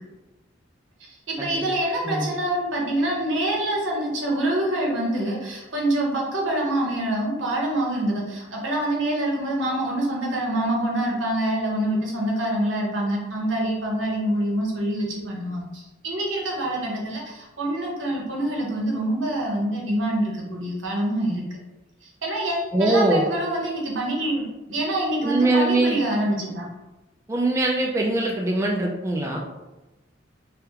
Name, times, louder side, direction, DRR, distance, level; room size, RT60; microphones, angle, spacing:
voice 1, 1.0-21.4 22.0-26.7, right 1 dB, 85° right, -2 dB, 0.9 m, -26 dB
voice 2, 22.7-23.2 25.2-26.0 27.3-29.4, right 2 dB, 15° right, -1 dB, 0.3 m, -22 dB
3.5 x 2.3 x 2.8 m, 1.1 s
head